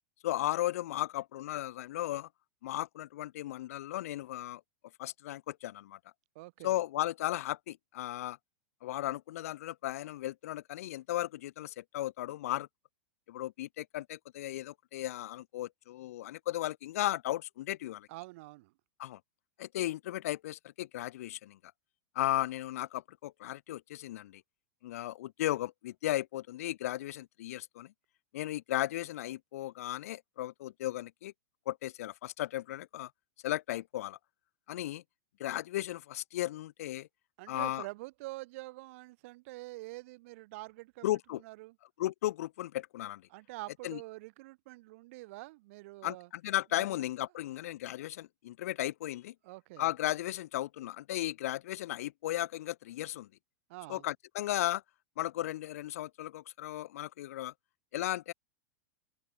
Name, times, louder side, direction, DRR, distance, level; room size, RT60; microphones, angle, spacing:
voice 1, 0.2-2.3 2.6-4.6 5.0-6.0 6.6-8.4 8.8-12.7 13.3-18.1 19.0-19.2 19.6-21.6 22.1-24.4 24.8-27.9 28.3-31.3 31.7-33.1 33.4-34.2 34.7-35.0 35.4-37.1 37.5-37.9 41.0-41.4 42.0-43.2 43.8-44.0 46.0-49.3 49.8-53.3 53.9-54.8 55.2-57.5 57.9-58.3, left 14 dB, 70° left, 0.7 m, -35 dB
voice 2, 6.3-6.8 18.1-18.7 37.4-41.8 43.3-46.3 46.8-47.1 49.4-49.9 53.7-54.1, right 21 dB, 60° right, 0.7 m, -46 dB
hypercardioid pair, 105°, 8 cm